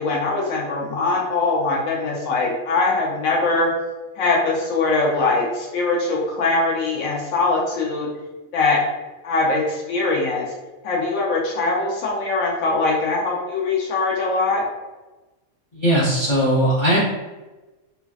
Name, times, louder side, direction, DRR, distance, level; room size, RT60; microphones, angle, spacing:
voice 1, 0.0-3.7 4.2-8.1 8.5-8.8 9.2-10.5 10.8-14.6, left 3 dB, 80° left, -3 dB, 1.0 m, -22 dB
voice 2, 15.7-17.0, equal, 35° left, -8 dB, 0.4 m, -18 dB
3.1 x 2.5 x 2.3 m, 1.1 s
omnidirectional pair, 1.5 m